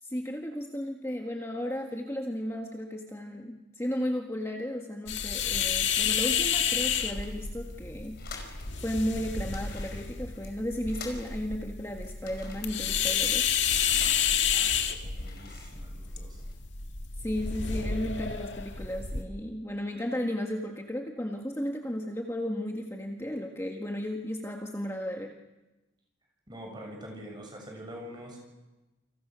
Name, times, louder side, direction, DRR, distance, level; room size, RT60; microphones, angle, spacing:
voice 1, 0.0-8.2 8.8-13.5 17.2-25.3, equal, 15° left, 1 dB, 1.7 m, -34 dB
sound 1, 5.1-19.2, left 7 dB, 70° left, 2.0 m, -30 dB
sound 2, 6.6-8.7 9.0-9.1 9.3-11.6 12.0-14.5 15.0-16.5, left 4 dB, 55° left, 5.2 m, -48 dB
voice 2, 14.5-16.4 26.5-28.4, equal, 25° right, 1 dB, 6.9 m, -45 dB
29.5 x 25.0 x 6.3 m, 1.1 s
head